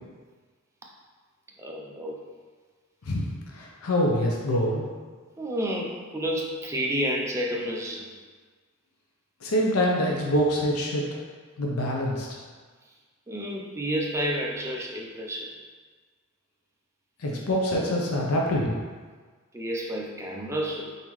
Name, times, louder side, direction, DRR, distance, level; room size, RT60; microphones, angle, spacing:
voice 1, 1.6-2.2 5.4-8.1 13.3-15.5 19.5-21.0, equal, 15° right, -1 dB, 0.5 m, -30 dB
voice 2, 3.5-4.9 9.4-11.0 11.6-12.3 17.2-18.7, equal, 85° left, -2 dB, 0.6 m, -25 dB
4.0 x 3.7 x 3.1 m, 1.5 s
head